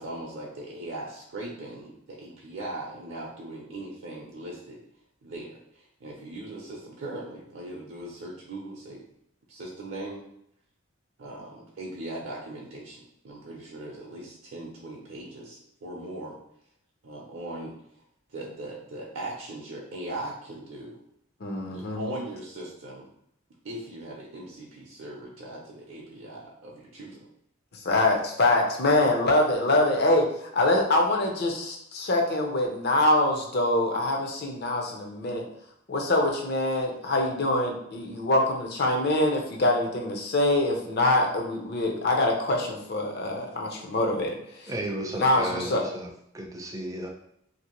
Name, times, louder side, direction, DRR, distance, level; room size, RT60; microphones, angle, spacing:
voice 1, 0.0-4.8 5.2-9.0 9.5-10.2 11.2-16.4 17.0-17.7 18.3-21.0 21.7-23.1 23.6-27.2, right 1 dB, 65° right, -3 dB, 0.5 m, -39 dB
voice 2, 21.4-22.0 27.7-35.4 35.9-44.7 45.2-45.9, left 2 dB, 50° left, 1 dB, 0.5 m, -24 dB
voice 3, 44.7-47.1, right 1 dB, 15° right, 1 dB, 0.4 m, -34 dB
2.6 x 2.5 x 2.9 m, 0.74 s
head